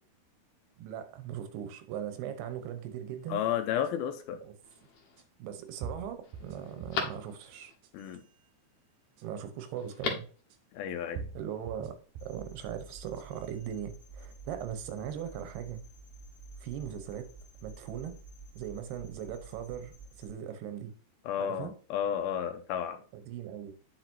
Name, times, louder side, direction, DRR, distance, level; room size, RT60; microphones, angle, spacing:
voice 1, 0.8-3.4 4.4-4.5 5.4-7.7 9.2-10.3 11.3-15.8 16.6-17.3 17.6-18.1 18.6-20.9 21.4-21.7 23.1-23.7, right 9 dB, 90° right, 3.0 m, -39 dB
voice 2, 3.3-4.4 7.9-8.2 10.7-11.3 21.3-23.0, left 9 dB, 80° left, 2.5 m, -32 dB
sound 1, 3.8-3.9 5.2-5.3 5.8-7.1 7.7-8.2 9.2-9.3 10.5-10.6 11.2-12.5 13.0-13.5, right 6 dB, 70° right, 2.3 m, -43 dB
Telephone, 4.6-5.2 5.8-5.9 6.2-7.8 9.8-10.4 10.7-10.8, left 5 dB, 60° left, 2.0 m, -38 dB
sound 2, 12.2-20.3, right 3 dB, 20° left, 2.4 m, -50 dB
9.0 x 5.8 x 2.7 m
omnidirectional pair, 4.5 m